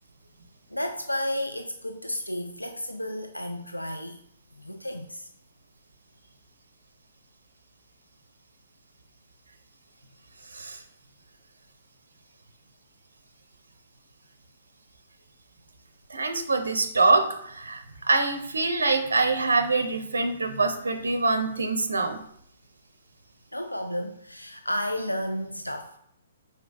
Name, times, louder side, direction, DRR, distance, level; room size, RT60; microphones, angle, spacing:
voice 1, 0.7-4.2 4.6-5.3 23.5-26.0, left 1 dB, 85° left, 6 dB, 0.3 m, -32 dB
voice 2, 10.5-10.8 16.1-22.2, right 3 dB, 70° right, 8 dB, 0.5 m, -25 dB
4.9 x 4.1 x 2.5 m, 0.69 s
figure-of-eight pair, 120°, 0 cm